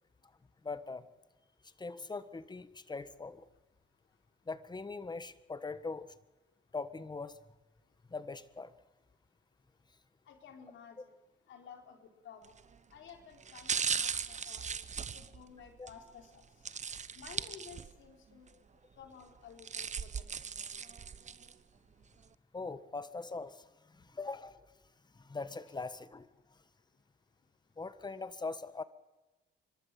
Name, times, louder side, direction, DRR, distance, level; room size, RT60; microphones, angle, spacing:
voice 1, 0.6-1.1 1.6-3.4 4.5-6.1 6.7-7.4 8.1-8.7 15.8-15.9 22.5-24.7 25.1-26.6 27.8-28.8, left 3 dB, 20° left, 13 dB, 1.5 m, -42 dB
voice 2, 10.3-11.1 11.5-12.4 12.9-14.6 15.1-16.5 17.1-18.5 19.0-20.3, left 7 dB, 70° left, 3 dB, 4.4 m, -53 dB
sound 1, 12.4-12.7 13.4-16.0 16.7-18.1 18.5-18.6 19.4-21.5 22.0-22.1, right 6 dB, 35° right, 0.9 m, -38 dB
30.0 x 12.5 x 7.7 m, 1.1 s
cardioid pair, 90°, 20 cm